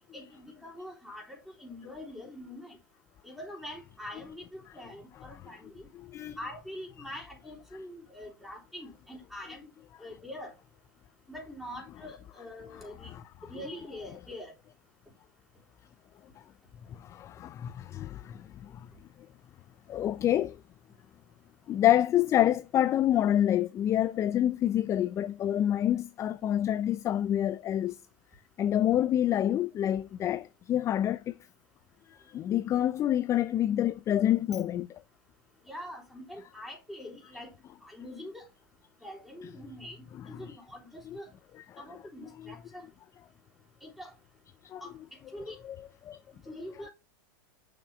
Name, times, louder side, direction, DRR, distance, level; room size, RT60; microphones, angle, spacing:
voice 1, 0.1-2.8 3.2-5.9 6.4-9.7 10.0-10.5 11.3-13.1 13.4-14.5 35.7-37.5 37.8-38.5 39.0-41.3 41.8-42.9 43.8-44.1 44.8-44.9 45.3-45.6 46.5-46.9, left 1 dB, ahead, 3.4 m, -44 dB
voice 2, 6.0-6.5 9.5-9.6 12.0-12.1 12.7-13.2 13.6-13.9 16.9-18.9 19.9-20.6 21.7-28.0 28.6-31.3 32.3-35.0 39.4-39.6 40.1-40.5 41.1-41.2 41.5-42.5 44.7-45.3 45.6-45.9 46.7-46.9, left 11 dB, 25° left, 0.4 m, -28 dB
7.0 x 6.1 x 3.3 m
supercardioid pair, 125°, 11 cm